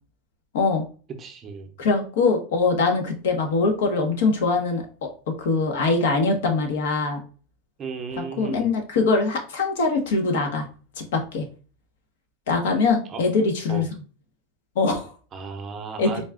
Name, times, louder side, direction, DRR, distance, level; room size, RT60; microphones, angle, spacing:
voice 1, 1.2-1.7 7.8-8.7 13.1-13.2 13.7-13.9 15.3-16.3, right 5 dB, 25° right, 5 dB, 0.6 m, -35 dB
voice 2, 1.8-7.2 8.4-10.6 11.0-11.4 12.5-13.8 14.8-15.1 16.0-16.1, left 4 dB, 85° left, 4 dB, 1.0 m, -22 dB
4.0 x 2.3 x 3.6 m, 0.38 s
supercardioid pair, 165°, 0 cm